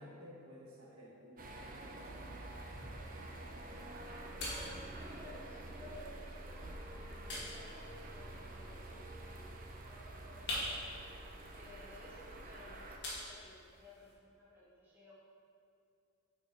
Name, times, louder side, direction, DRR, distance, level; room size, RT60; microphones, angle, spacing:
voice 1, 0.0-2.3, equal, 70° right, -4 dB, 1.4 m, -54 dB
sound 1, 1.4-13.0, right 1 dB, 40° right, 0.6 m, -48 dB
sound 2, 2.1-14.1, left 1 dB, 50° left, 1.8 m, -48 dB
voice 2, 4.4-11.2 11.5-15.1, left 1 dB, 10° right, -9 dB, 1.8 m, -56 dB
8.0 x 5.1 x 4.5 m, 2.5 s
head